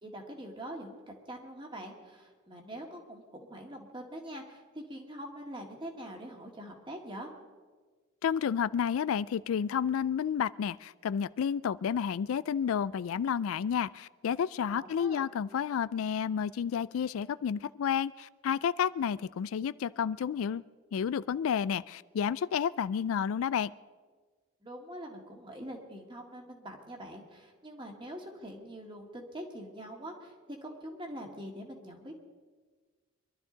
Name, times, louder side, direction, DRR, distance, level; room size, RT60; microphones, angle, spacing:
voice 1, 0.0-7.3 14.7-15.2 24.6-32.2, equal, 25° right, 1 dB, 1.9 m, -44 dB
voice 2, 8.2-20.6 20.9-23.7, left 7 dB, 80° left, 18 dB, 0.3 m, -31 dB
23.5 x 12.0 x 3.9 m, 1.4 s
head